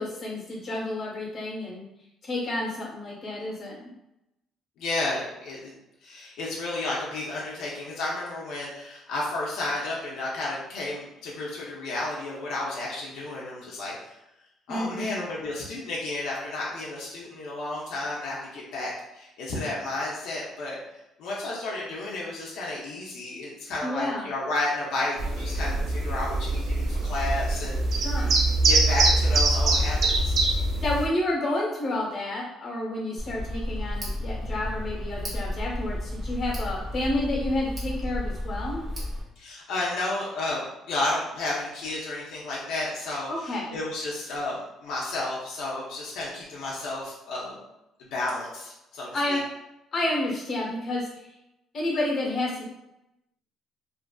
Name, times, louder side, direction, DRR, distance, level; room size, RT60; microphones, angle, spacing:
voice 1, 0.0-1.8 2.2-3.8 14.7-15.2 23.8-24.3 27.9-28.3 30.8-38.8 43.3-43.7 49.1-49.4 49.9-51.1 51.7-52.7, left 1 dB, 40° left, -3 dB, 0.9 m, -30 dB
voice 2, 4.8-5.7 6.0-14.2 14.7-20.8 21.2-28.3 28.6-30.4 39.4-47.6 48.0-49.4, left 2 dB, 80° left, -4 dB, 0.5 m, -32 dB
sound 1, 25.2-31.1, right 2 dB, 60° right, 0.4 m, -23 dB
Tick, 33.2-39.2, left 1 dB, 25° right, 0.9 m, -32 dB
2.5 x 2.5 x 2.2 m, 0.90 s
cardioid pair, 135°, 0 cm